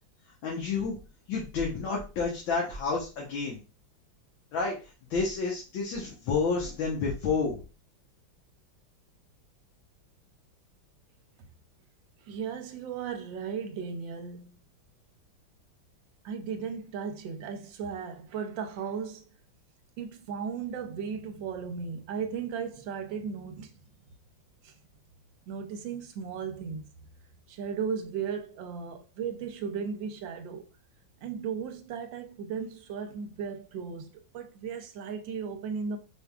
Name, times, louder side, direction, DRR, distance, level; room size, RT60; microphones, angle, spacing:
voice 1, 0.4-1.0 1.3-3.6 4.5-4.8 5.1-7.6, left 4 dB, 75° left, 1.8 m, -30 dB
voice 2, 12.3-14.6 16.2-19.2 20.0-23.7 24.6-24.8 25.5-26.8 27.5-30.6 31.2-36.0, right 6 dB, 75° right, 1.3 m, -36 dB
5.0 x 3.4 x 2.3 m
omnidirectional pair, 2.2 m